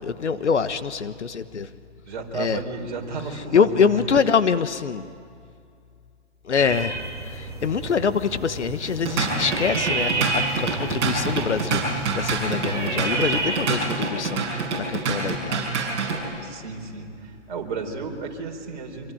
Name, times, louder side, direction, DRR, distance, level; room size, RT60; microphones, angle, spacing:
voice 1, 0.0-1.7 2.3-2.6 3.5-5.0 6.5-7.0 7.3-15.7, left 6 dB, 70° left, 11 dB, 1.4 m, -24 dB
voice 2, 2.0-4.0 16.4-19.1, right 4 dB, 40° right, 1 dB, 4.4 m, -33 dB
sound 1, 6.6-13.8, right 3 dB, 10° right, 5.7 m, -30 dB
Drum kit / Drum, 8.8-16.2, right 4 dB, 25° right, 6.7 m, -26 dB
26.0 x 24.5 x 9.2 m, 2.4 s
hypercardioid pair, 160°, 36 cm